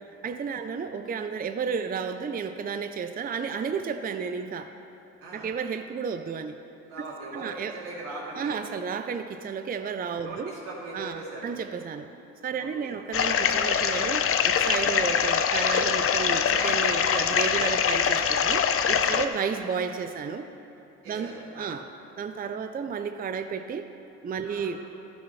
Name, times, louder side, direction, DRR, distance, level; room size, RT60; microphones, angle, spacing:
voice 1, 0.2-4.7 5.3-6.6 7.3-7.7 8.3-10.5 10.9-12.1 12.4-20.5 21.1-21.9 22.2-23.8 24.2-24.8, right 6 dB, 30° right, 8 dB, 0.5 m, -32 dB
voice 2, 6.9-8.6 10.2-11.5 12.6-12.9 19.0-19.2 21.0-21.7 24.4-24.7, right 2 dB, 85° right, -5 dB, 2.7 m, -40 dB
sound 1, 13.1-19.3, left 7 dB, 45° left, 0.6 m, -24 dB
13.0 x 11.0 x 3.2 m, 2.8 s
supercardioid pair, 75°, 31 cm